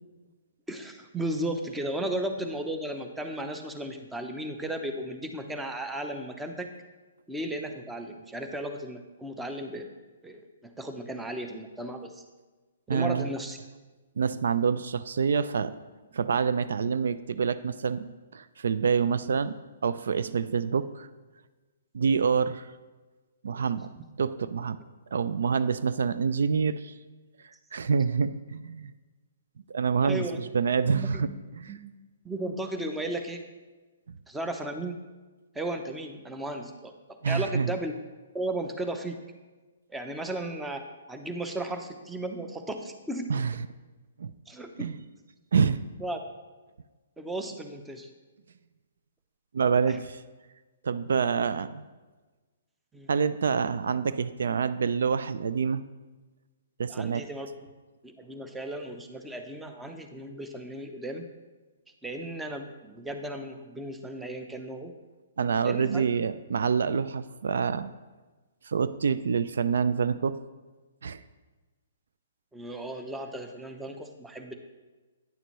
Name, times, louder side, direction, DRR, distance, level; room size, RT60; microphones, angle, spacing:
voice 1, 0.7-6.7 7.3-9.9 10.2-12.2 12.9-13.6 30.0-30.4 30.9-31.2 31.7-31.8 32.2-33.4 34.3-35.0 35.5-36.9 37.3-37.9 38.3-39.2 39.9-43.3 44.5-44.9 46.0-46.2 47.2-48.1 49.9-50.0 52.9-53.1 56.9-57.5 58.0-61.3 62.0-64.9 65.6-66.1 72.5-74.5, right 1 dB, 5° right, 6 dB, 0.6 m, -35 dB
voice 2, 12.9-13.3 14.2-15.7 16.1-21.1 21.9-22.7 23.4-23.9 24.2-24.8 25.1-26.9 27.7-28.9 29.7-31.7 37.2-37.7 43.3-43.6 44.2-44.3 44.8-45.0 45.5-45.8 49.5-50.2 50.8-51.8 53.1-55.8 56.8-57.3 65.4-67.9 68.6-70.4 71.0-71.2, right 6 dB, 75° right, 14 dB, 0.3 m, -27 dB
9.3 x 6.7 x 3.1 m, 1.3 s
hypercardioid pair, 145°, 0 cm